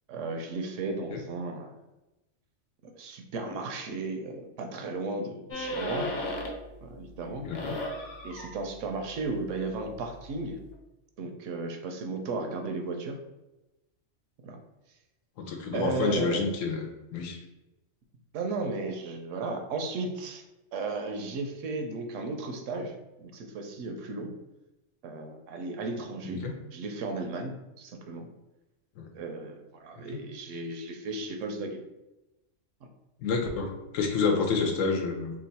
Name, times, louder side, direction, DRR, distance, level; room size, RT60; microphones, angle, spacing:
voice 1, 0.1-1.7 2.8-6.1 6.8-7.4 8.2-10.6 11.2-13.2 14.4-14.6 15.7-16.5 18.3-20.4 20.7-24.3 25.0-26.4 26.7-28.3 29.1-31.8, right 3 dB, 75° right, 4 dB, 0.9 m, -35 dB
sound 1, 5.5-6.7 7.1-10.7, left 1 dB, 50° left, 0.6 m, -37 dB
voice 2, 7.4-7.7 15.5-16.9 17.1-17.4 26.2-26.5 29.0-29.1 33.2-35.3, left 4 dB, 90° left, 3 dB, 1.0 m, -28 dB
3.0 x 2.3 x 4.0 m, 1.0 s
omnidirectional pair, 1.3 m